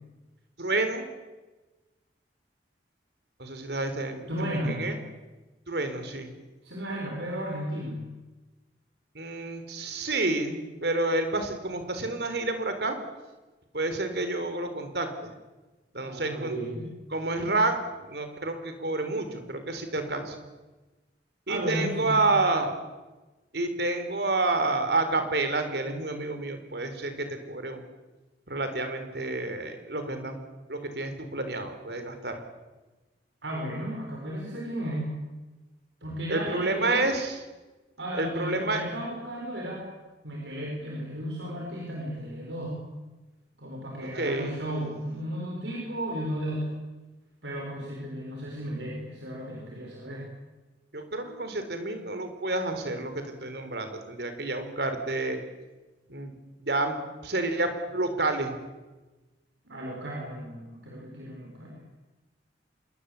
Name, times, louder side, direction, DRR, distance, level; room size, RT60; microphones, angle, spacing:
voice 1, 0.6-1.1 3.4-5.0 5.7-6.3 9.1-12.9 13.7-15.3 15.9-16.5 17.1-20.4 21.5-22.7 23.5-27.8 28.5-30.4 30.7-32.4 36.3-37.4 38.2-38.8 44.0-44.6 50.9-55.4 56.1-58.6, right 2 dB, 65° right, 8 dB, 4.3 m, -29 dB
voice 2, 4.3-4.8 6.6-8.0 15.9-16.9 21.5-22.2 33.4-35.1 36.0-37.1 38.0-39.9 40.2-42.8 43.6-46.8 47.4-50.2 59.6-61.8, equal, 85° right, -2 dB, 6.3 m, -34 dB
27.0 x 22.5 x 8.6 m, 1.2 s
head